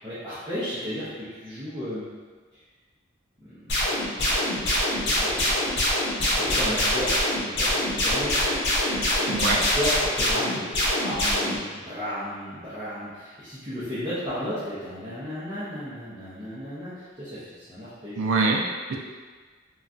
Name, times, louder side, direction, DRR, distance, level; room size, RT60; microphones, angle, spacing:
voice 1, 0.0-2.1 2.5-2.6 3.4-4.0 5.0-5.6 6.4-8.4 9.4-18.2, equal, 20° right, -14 dB, 0.7 m, -34 dB
sound 1, 3.7-11.6, left 1 dB, 60° left, 0.8 m, -24 dB
voice 2, 9.3-9.6 18.2-19.0, right 3 dB, 75° right, 1 dB, 0.4 m, -24 dB
3.0 x 2.3 x 2.5 m, 1.5 s
head